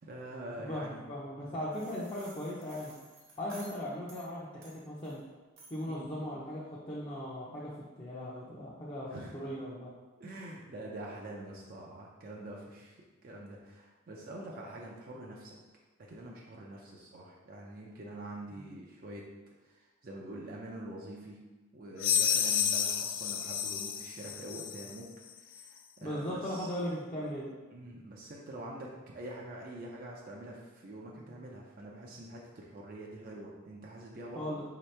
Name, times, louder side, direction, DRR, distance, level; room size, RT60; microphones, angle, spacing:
voice 1, 0.0-1.1 1.4-1.6 5.8-6.1 9.1-9.4 10.2-13.0 13.2-15.6 16.1-19.3 19.6-21.4 21.7-25.1 25.3-26.7 27.7-34.6, right 1 dB, 45° right, -2 dB, 0.5 m, -45 dB
voice 2, 0.6-2.9 3.4-5.2 5.7-9.9 18.5-18.6 26.0-27.5 34.3-34.6, equal, 25° left, -7 dB, 0.6 m, -38 dB
sound 1, 1.7-4.3 4.6-5.2 5.6-5.9, right 2 dB, 80° right, 1.1 m, -54 dB
sound 2, 22.0-25.0, left 8 dB, 75° left, 0.3 m, -30 dB
4.5 x 2.8 x 3.2 m, 1.2 s
head